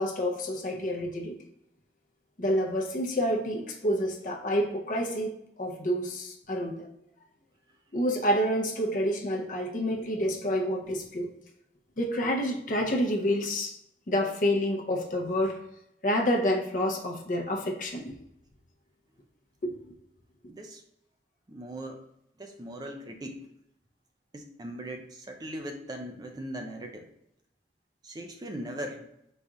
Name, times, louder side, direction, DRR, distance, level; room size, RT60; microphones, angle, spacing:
voice 1, 0.0-1.4 2.4-6.9 7.9-11.3 12.0-13.8 14.1-15.6 16.0-18.1 19.6-19.9, equal, 50° left, 0.6 m, -28 dB
voice 2, 20.5-20.8 21.5-22.0 22.4-23.4 24.3-27.1 28.0-29.1, right 1 dB, 25° right, 0.4 m, -39 dB
4.1 x 2.4 x 4.7 m
head